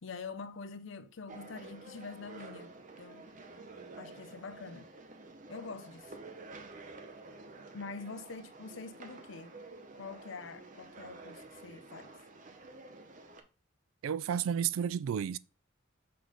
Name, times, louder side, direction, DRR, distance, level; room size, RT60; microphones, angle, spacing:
voice 1, 0.0-3.3 4.0-4.9 5.5-6.2 7.7-9.6 9.9-12.1, left 4 dB, 70° left, 0.6 m, -45 dB
sound 1, 1.3-13.4, right 3 dB, 40° right, 0.7 m, -50 dB
voice 2, 14.0-15.4, right 8 dB, 90° right, 0.3 m, -32 dB
5.9 x 3.2 x 5.1 m
head